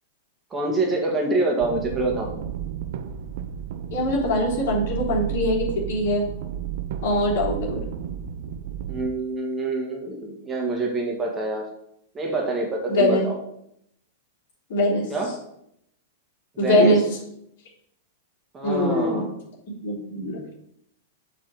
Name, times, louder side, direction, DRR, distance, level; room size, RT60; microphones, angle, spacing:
voice 1, 0.5-2.5 8.9-11.7 12.1-13.4 15.1-15.3 16.6-17.0 18.5-19.3, right 2 dB, 15° right, 0 dB, 1.8 m, -26 dB
sound 1, 1.6-9.1, right 10 dB, 50° right, 0.6 m, -32 dB
voice 2, 3.9-6.2 7.0-7.8 12.9-13.2 14.7-15.1 16.6-17.0 18.6-19.3 19.7-20.4, left 1 dB, 50° left, -4 dB, 3.6 m, -22 dB
7.2 x 4.6 x 6.7 m, 0.74 s
figure-of-eight pair, 95°, 0 cm